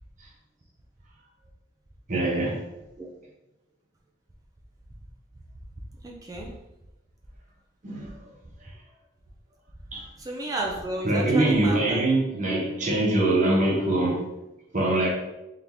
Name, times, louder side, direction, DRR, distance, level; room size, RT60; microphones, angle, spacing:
voice 1, 2.1-2.6 7.8-8.2 9.9-10.0 11.0-14.3 14.7-15.1, right 2 dB, 45° right, 0.8 m, -23 dB
voice 2, 6.0-6.5 10.2-12.0, right 2 dB, 20° right, 0.4 m, -32 dB
3.8 x 2.9 x 3.4 m
head